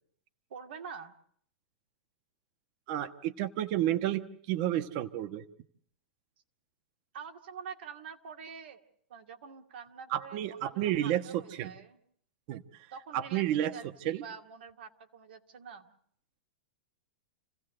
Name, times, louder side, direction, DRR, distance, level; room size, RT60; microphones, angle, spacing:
voice 1, 0.5-1.1 7.1-8.8 9.1-12.0 12.9-15.9, right 6 dB, 75° right, 5 dB, 2.4 m, -46 dB
voice 2, 2.9-5.4 10.1-11.7 12.5-12.6 13.1-13.7 14.0-14.2, right 12 dB, 45° right, 10 dB, 1.3 m, -31 dB
28.0 x 16.0 x 7.8 m, 0.64 s
hypercardioid pair, 140°, 6 cm